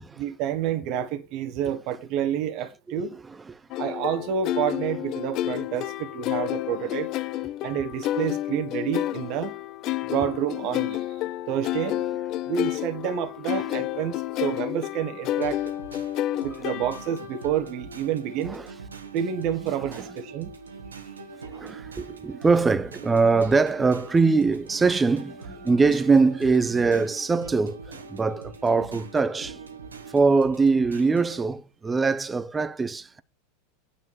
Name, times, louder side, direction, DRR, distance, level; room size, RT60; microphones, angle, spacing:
voice 1, 0.0-3.2 3.8-7.1 7.6-9.5 10.1-11.0 11.5-12.0 12.5-14.1 14.4-15.7 16.4-18.6 19.1-20.5, right 9 dB, 50° right, 1.5 m, -29 dB
voice 2, 3.3-3.6 8.1-8.2 13.7-13.8 16.3-16.5 18.5-18.7 19.9-20.1 21.5-29.6 30.1-33.2, right 4 dB, 15° right, 0.9 m, -23 dB
sound 1, 3.7-17.3, left 14 dB, 45° left, 0.5 m, -30 dB
sound 2, 15.4-31.4, right 3 dB, 90° right, 1.6 m, -43 dB
9.7 x 5.1 x 7.3 m
hypercardioid pair, 90°, 0 cm